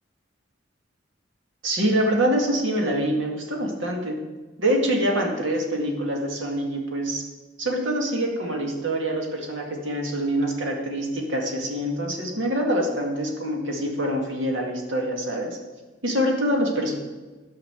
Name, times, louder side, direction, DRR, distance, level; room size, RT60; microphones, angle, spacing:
voice 1, 1.6-4.2 4.6-7.2 7.6-15.6 16.0-16.9, right 1 dB, 75° right, 1 dB, 2.1 m, -25 dB
12.5 x 5.8 x 6.7 m, 1.3 s
head